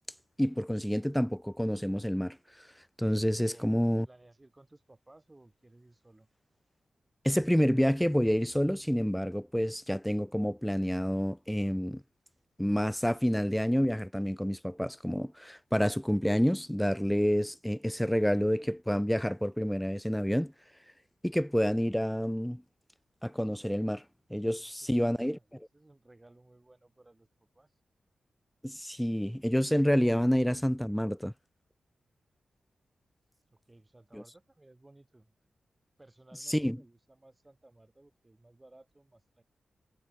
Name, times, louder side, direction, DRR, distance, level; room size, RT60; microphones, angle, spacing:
voice 1, 0.4-2.4 3.0-4.1 7.2-12.0 12.6-20.5 21.2-22.6 23.2-24.0 24.3-25.4 28.6-31.3 34.1-34.2 36.5-36.8, equal, 5° left, 0.4 m, -28 dB
voice 2, 3.4-6.3 24.5-27.8 33.5-35.5 36.0-39.4, right 2 dB, 15° right, 5.6 m, -59 dB
wide cardioid pair, 120°, 0 cm